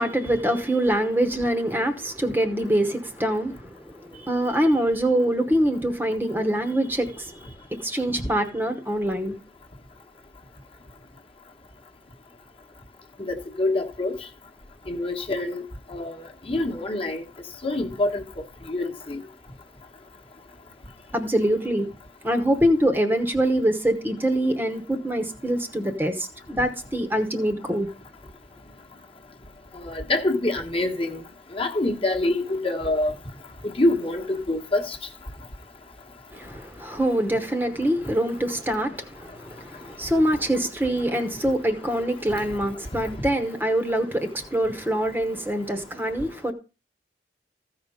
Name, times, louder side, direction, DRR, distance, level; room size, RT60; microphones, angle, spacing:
voice 1, 0.0-7.5 7.8-9.4 21.1-21.9 22.2-27.9 36.3-46.5, right 1 dB, 10° right, 1.0 m, -24 dB
voice 2, 13.3-14.1 14.9-15.6 15.9-17.2 17.6-18.2 18.7-19.2 29.7-31.2 31.5-33.1 33.6-35.0, left 2 dB, 30° left, 1.2 m, -25 dB
14.5 x 5.0 x 5.4 m
head